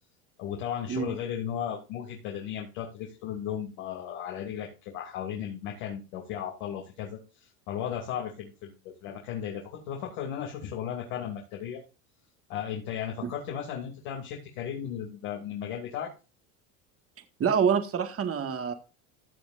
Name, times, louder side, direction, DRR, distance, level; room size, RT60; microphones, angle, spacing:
voice 1, 0.4-11.8 12.5-16.1, left 9 dB, 75° left, 0 dB, 2.9 m, -35 dB
voice 2, 17.4-18.7, right 7 dB, 30° right, 7 dB, 1.9 m, -26 dB
15.5 x 7.7 x 2.6 m, 0.31 s
supercardioid pair, 100°, 44 cm